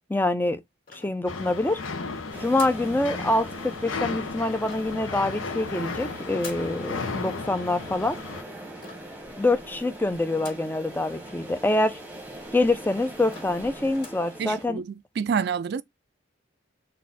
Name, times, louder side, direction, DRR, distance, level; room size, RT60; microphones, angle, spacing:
voice 1, 0.1-0.6 0.9-1.8 2.4-8.2 9.4-12.0 12.5-14.8, left 2 dB, 10° left, 0.4 m, -25 dB
sound 1, 0.9-1.6 2.5-2.9 4.6-5.1 6.4-6.8 8.8-9.2 10.4-10.8 11.3-11.4 11.6-11.7 12.4-12.5 12.9-13.0 13.3-13.6 13.9-14.3, left 4 dB, 45° left, 2.0 m, -45 dB
sound 2, 1.3-8.4, left 4 dB, 85° left, 0.8 m, -35 dB
sound 3, 2.3-14.7, right 1 dB, 10° right, 1.1 m, -42 dB
voice 2, 14.4-15.8, right 6 dB, 55° right, 0.3 m, -28 dB
4.1 x 2.5 x 4.1 m
head